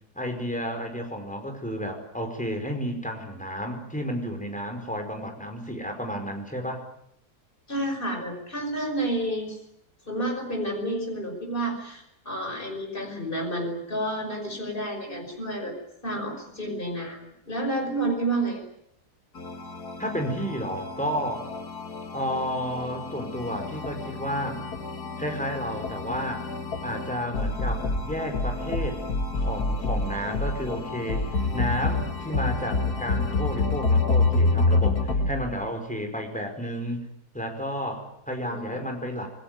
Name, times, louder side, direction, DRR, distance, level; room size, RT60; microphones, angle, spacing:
voice 1, 0.1-6.8 20.0-21.5 22.1-24.6 25.2-26.5 26.8-29.0 29.3-37.1 37.3-39.3, equal, 5° left, 4 dB, 4.9 m, -32 dB
voice 2, 7.7-9.6 10.1-15.7 16.0-18.6 38.4-38.9, right 1 dB, 35° left, 3 dB, 5.7 m, -30 dB
sound 1, 19.4-35.3, left 3 dB, 85° left, 2.8 m, -28 dB
27.0 x 19.5 x 9.3 m, 0.75 s
omnidirectional pair, 1.6 m